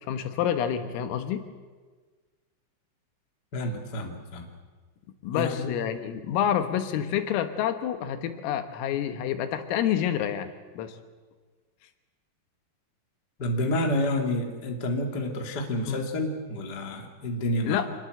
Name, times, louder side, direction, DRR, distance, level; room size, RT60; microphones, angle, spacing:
voice 1, 0.1-1.4 5.2-11.0 15.9-16.0 17.7-17.9, left 9 dB, 85° left, 8 dB, 4.1 m, -28 dB
voice 2, 3.5-4.5 5.3-5.7 13.4-17.8, left 1 dB, 30° left, 3 dB, 1.9 m, -29 dB
26.0 x 21.0 x 8.0 m, 1.4 s
omnidirectional pair, 5.8 m